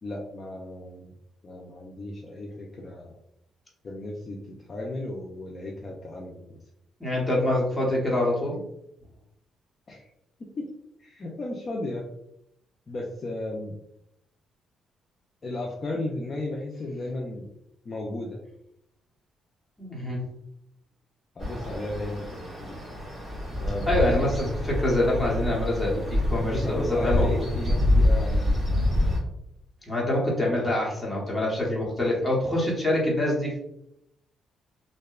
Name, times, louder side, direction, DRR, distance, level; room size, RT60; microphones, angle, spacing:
voice 1, 0.0-1.1 1.4-3.2 3.8-6.6 9.9-10.1 10.6-10.7 11.0-12.0 12.9-13.8 15.4-17.5 17.9-18.4 21.4-22.8 23.6-24.4 26.3-28.5, left 2 dB, 40° left, -1 dB, 0.4 m, -34 dB
voice 2, 7.0-8.6 19.8-20.2 23.9-27.5 29.9-33.6, left 1 dB, 10° left, -4 dB, 1.0 m, -25 dB
sound 1, 21.4-29.2, left 1 dB, 20° right, 1.4 m, -26 dB
2.7 x 2.1 x 2.3 m, 0.77 s
cardioid pair, 90°, 0 cm